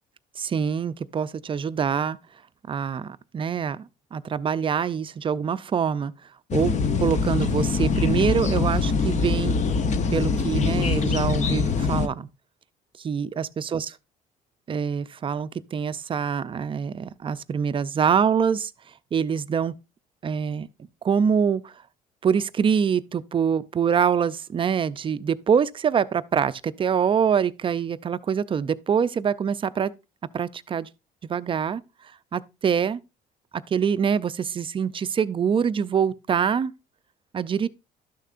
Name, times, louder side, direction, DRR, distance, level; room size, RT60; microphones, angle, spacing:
voice 1, 0.4-2.2 2.7-3.8 4.1-6.1 6.5-9.6 10.1-12.3 13.0-13.9 14.7-18.7 19.1-19.8 20.2-20.7 21.0-21.7 22.2-29.9 30.3-30.9 31.2-31.8 32.3-33.0 33.5-36.7 37.3-37.7, right 7 dB, 30° right, 0.4 m, -25 dB
sound 1, 6.5-12.1, left 5 dB, 45° left, 0.8 m, -23 dB
12.0 x 6.5 x 2.5 m
cardioid pair, 110°, 17 cm